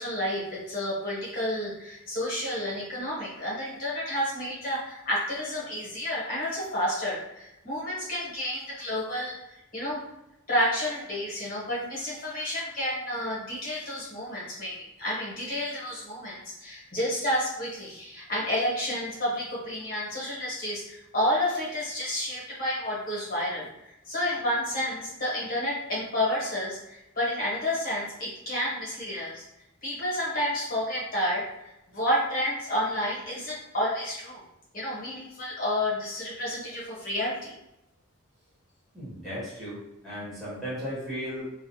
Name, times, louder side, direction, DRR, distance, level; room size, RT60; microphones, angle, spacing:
voice 1, 0.0-10.0 10.5-29.4 29.8-34.4 34.7-37.5, left 1 dB, 40° left, -6 dB, 1.0 m, -30 dB
voice 2, 38.9-41.4, equal, ahead, -11 dB, 0.9 m, -36 dB
2.3 x 2.2 x 2.6 m, 0.87 s
head